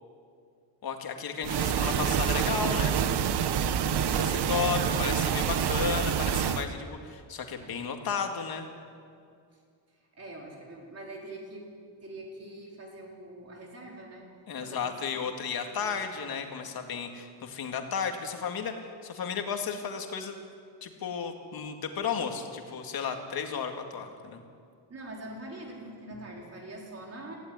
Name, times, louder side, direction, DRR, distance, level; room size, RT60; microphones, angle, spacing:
voice 1, 0.8-3.0 4.2-8.7 14.5-18.7 19.0-20.4 20.8-24.4, left 6 dB, 50° left, 4 dB, 2.2 m, -33 dB
sound 1, 1.4-6.7, right 8 dB, 60° right, 1.0 m, -27 dB
voice 2, 4.0-5.1 10.2-11.7 12.0-14.3 14.6-14.8 15.1-15.3 15.7-16.0 24.9-27.3, right 1 dB, 35° right, -1 dB, 4.4 m, -44 dB
18.5 x 15.5 x 9.6 m, 2.2 s
wide cardioid pair, 175°, 45 cm